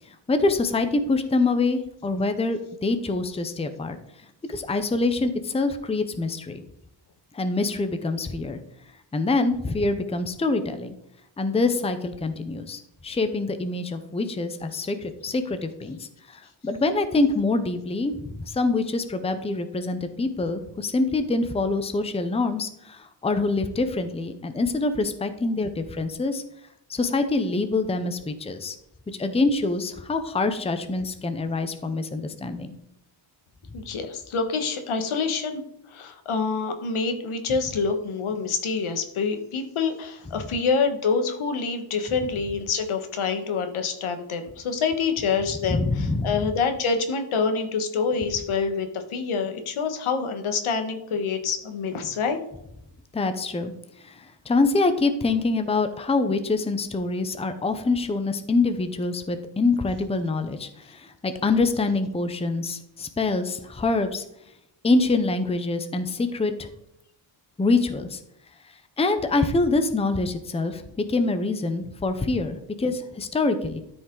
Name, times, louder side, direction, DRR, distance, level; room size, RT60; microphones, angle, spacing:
voice 1, 0.1-4.0 4.5-6.6 7.3-8.6 9.1-10.9 11.4-26.4 26.9-28.8 29.1-32.7 45.7-46.5 53.1-53.7 54.0-64.2 64.8-66.7 67.6-68.2 69.0-70.8 71.1-73.8, left 3 dB, 15° left, 9 dB, 0.6 m, -25 dB
voice 2, 33.7-35.6 35.9-52.4, left 5 dB, 85° left, 7 dB, 1.5 m, -26 dB
13.0 x 5.3 x 3.8 m, 0.80 s
wide cardioid pair, 155°, 48 cm